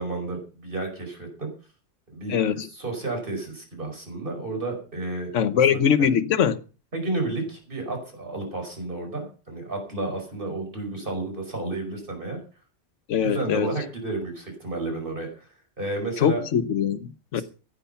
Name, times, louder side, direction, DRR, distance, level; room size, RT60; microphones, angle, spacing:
voice 1, 0.0-1.5 2.1-5.3 5.7-6.1 6.9-12.4 13.2-15.5 15.8-16.4 17.3-17.4, right 2 dB, 45° right, 5.5 m, -31 dB
voice 2, 2.3-2.7 5.3-6.6 13.1-13.7 16.2-17.4, left 8 dB, 85° left, 1.2 m, -22 dB
15.5 x 10.0 x 5.6 m
omnidirectional pair, 1.2 m